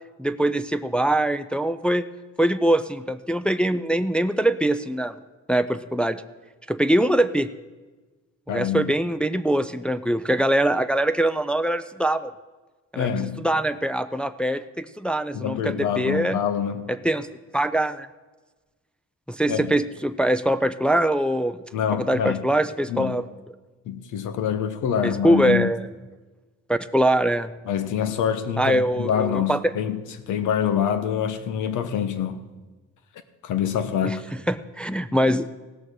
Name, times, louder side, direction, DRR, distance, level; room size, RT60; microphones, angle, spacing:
voice 1, 0.2-2.0 2.4-5.1 5.5-6.2 6.7-7.5 8.5-12.3 12.9-13.1 13.4-16.4 17.0-17.3 17.5-18.1 19.3-21.6 22.0-23.2 25.0-25.9 26.7-27.5 28.6-29.7 34.0-35.5, right 1 dB, 5° left, 9 dB, 0.4 m, -23 dB
voice 2, 8.5-8.9 12.9-13.5 15.3-16.9 19.5-19.8 21.7-22.5 22.9-23.2 23.9-25.7 27.7-30.0 30.3-32.4 33.4-34.2, left 8 dB, 80° left, 10 dB, 1.1 m, -26 dB
16.5 x 6.5 x 6.4 m, 1.2 s
cardioid pair, 90°, 30 cm